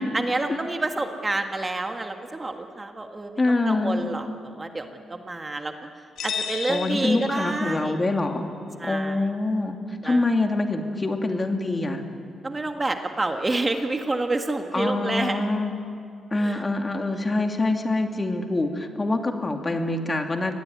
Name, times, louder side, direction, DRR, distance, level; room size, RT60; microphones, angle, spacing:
voice 1, 0.1-3.4 3.7-5.7 6.2-8.0 8.8-9.2 10.0-10.2 12.4-15.5 16.3-16.6 17.1-17.3, right 2 dB, 25° right, 5 dB, 1.7 m, -28 dB
voice 2, 3.4-4.0 6.7-8.5 8.8-9.8 10.0-12.0 14.7-15.7 16.3-20.5, left 2 dB, 25° left, 4 dB, 2.6 m, -25 dB
sound 1, 6.2-8.0, left 7 dB, 80° left, 3.8 m, -33 dB
25.0 x 19.0 x 9.6 m, 2.3 s
cardioid pair, 85°, 0 cm